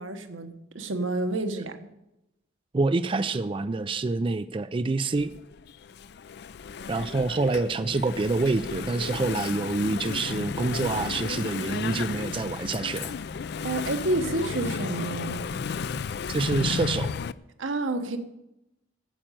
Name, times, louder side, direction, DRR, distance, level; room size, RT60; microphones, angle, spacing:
voice 1, 0.0-1.8 13.6-15.6 17.6-18.2, right 2 dB, 85° right, 1.2 m, -29 dB
voice 2, 2.7-5.3 6.9-13.1 16.3-17.1, right 3 dB, 25° right, 0.4 m, -27 dB
Engine / Mechanisms, 5.2-17.3, left 6 dB, 60° left, 0.4 m, -33 dB
8.9 x 7.5 x 9.0 m
head